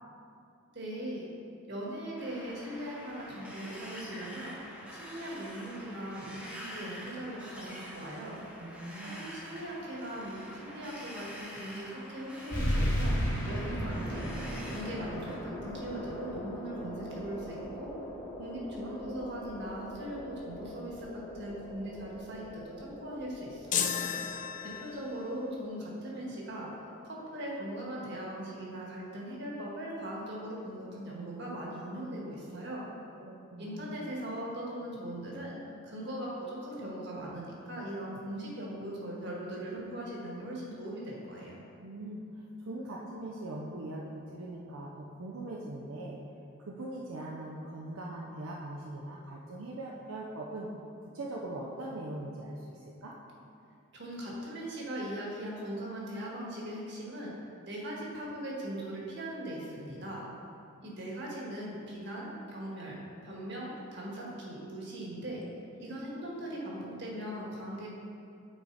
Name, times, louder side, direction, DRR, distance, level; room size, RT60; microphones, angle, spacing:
voice 1, 0.7-1.3 1.7-4.5 4.9-8.4 9.0-13.1 13.4-14.3 14.6-17.9 18.4-23.9 24.6-26.7 27.0-32.8 33.6-35.6 35.8-41.6 53.9-57.3 57.7-60.3 60.8-65.4 65.8-67.9, right 1 dB, 55° right, -4 dB, 1.6 m, -40 dB
Wind, 2.2-15.4, equal, 5° right, 0.9 m, -47 dB
voice 2, 8.6-9.3 33.2-34.0 41.8-46.2 46.6-50.7 51.1-53.1, right 1 dB, 80° right, -3 dB, 0.6 m, -41 dB
sound 1, 12.5-27.6, equal, 20° left, 1.5 m, -37 dB
sound 2, 23.7-25.2, left 8 dB, 35° left, 0.4 m, -33 dB
8.8 x 4.9 x 4.0 m, 2.5 s
head